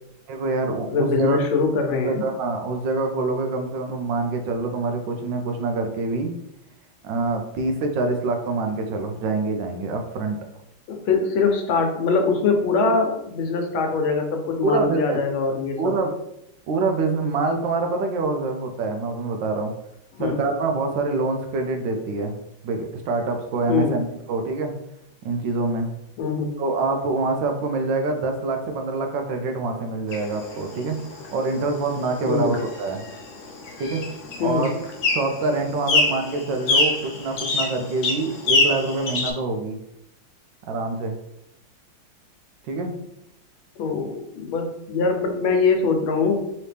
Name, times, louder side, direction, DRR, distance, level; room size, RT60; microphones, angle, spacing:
voice 1, 0.3-1.4 2.0-6.3 7.0-10.4 14.6-15.2 15.8-16.1 16.7-19.7 20.2-22.3 22.6-24.7 25.2-25.9 26.6-33.0 33.8-34.0 34.4-34.7 35.1-39.8 40.7-41.2 42.7-43.0, right 3 dB, 75° right, 4 dB, 1.2 m, -25 dB
voice 2, 0.9-2.2 10.9-16.0 20.1-20.4 23.7-24.0 26.2-26.5 32.3-32.6 34.4-34.7 43.8-46.4, left 4 dB, 85° left, 3 dB, 1.6 m, -23 dB
sound 1, 30.1-39.3, left 2 dB, 70° left, 0.7 m, -26 dB
4.2 x 3.0 x 3.3 m, 0.80 s
omnidirectional pair, 2.1 m